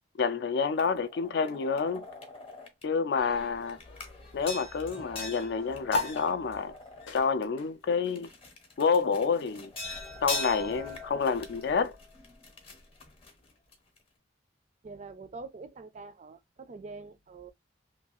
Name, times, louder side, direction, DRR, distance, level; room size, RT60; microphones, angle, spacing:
voice 1, 0.2-2.0 2.8-3.8 4.3-6.7 7.1-8.3 8.8-9.7 10.2-12.0, left 5 dB, 60° left, 0.3 m, -28 dB
sound 1, 0.8-2.8 3.2-7.6 8.0-14.0, left 3 dB, 30° left, 0.7 m, -42 dB
sound 2, 5.9-12.7, left 2 dB, 90° left, 0.7 m, -41 dB
voice 2, 14.8-17.5, right 4 dB, 35° right, 0.3 m, -45 dB
2.7 x 2.3 x 2.9 m
head